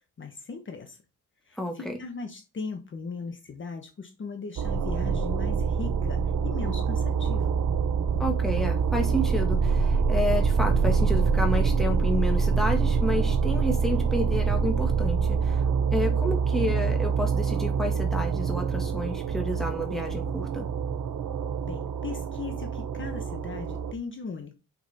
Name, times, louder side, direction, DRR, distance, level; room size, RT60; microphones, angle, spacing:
voice 1, 0.2-1.0 1.5-7.6 21.6-24.5, left 5 dB, 35° left, 1.1 m, -38 dB
voice 2, 1.6-2.0 8.2-15.6 15.9-20.7, left 1 dB, ahead, 1.9 m, -30 dB
sound 1, 4.6-23.9, right 5 dB, 75° right, 0.9 m, -25 dB
6.8 x 6.0 x 4.2 m
wide cardioid pair, 160°, 33 cm